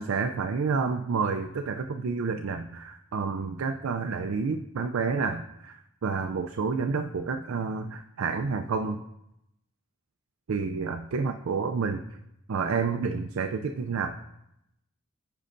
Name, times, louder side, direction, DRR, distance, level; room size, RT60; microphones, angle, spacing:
voice 1, 0.0-9.0 10.5-12.1 12.5-14.2, right 5 dB, 75° right, 6 dB, 0.4 m, -29 dB
15.0 x 5.5 x 2.6 m, 0.85 s
head